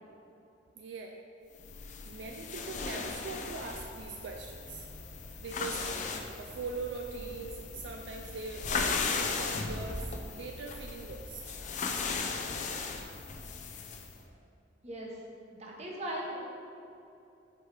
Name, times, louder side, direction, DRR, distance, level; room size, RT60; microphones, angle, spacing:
voice 1, 0.7-1.2 1.8-4.9 5.4-6.0 6.3-11.6, right 4 dB, 70° right, 2 dB, 0.4 m, -42 dB
sound 1, 1.6-14.1, left 4 dB, 40° left, 0.4 m, -37 dB
sound 2, 2.8-14.4, equal, 70° left, 0.7 m, -54 dB
voice 2, 14.8-15.2 15.5-16.4, right 1 dB, 35° right, -2 dB, 0.9 m, -38 dB
4.7 x 4.6 x 4.9 m, 2.7 s
head